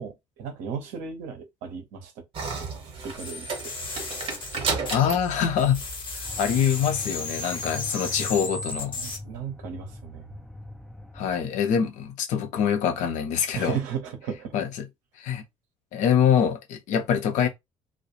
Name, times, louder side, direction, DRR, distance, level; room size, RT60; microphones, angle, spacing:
voice 1, 0.0-2.2 2.5-2.6 3.0-3.7 9.0-10.4 13.5-14.6, right 7 dB, 60° right, 0.7 m, -35 dB
sound 1, 2.3-6.6, right 4 dB, 40° right, 0.9 m, -33 dB
sound 2, 3.2-5.3 5.6-9.2, left 3 dB, 30° left, 0.9 m, -35 dB
voice 2, 4.9-5.8 6.1-9.0 11.1-13.8 14.5-14.9 15.2-15.4 15.9-17.5, left 8 dB, 55° left, 0.6 m, -24 dB
sound 3, 6.2-11.4, left 2 dB, ahead, 0.4 m, -42 dB
2.3 x 2.0 x 2.8 m
figure-of-eight pair, 50°, 15 cm